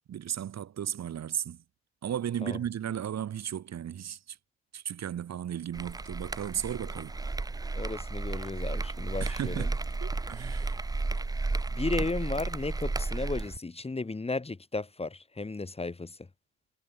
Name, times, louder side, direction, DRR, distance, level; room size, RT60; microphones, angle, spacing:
voice 1, 0.1-1.6 2.0-4.4 4.7-7.2 9.2-10.9, right 10 dB, 60° right, 2.9 m, -35 dB
sound 1, 5.7-13.6, right 3 dB, 10° right, 0.6 m, -33 dB
voice 2, 7.7-9.7 11.7-16.3, left 3 dB, 20° left, 2.4 m, -34 dB
cardioid pair, 90°, 30 cm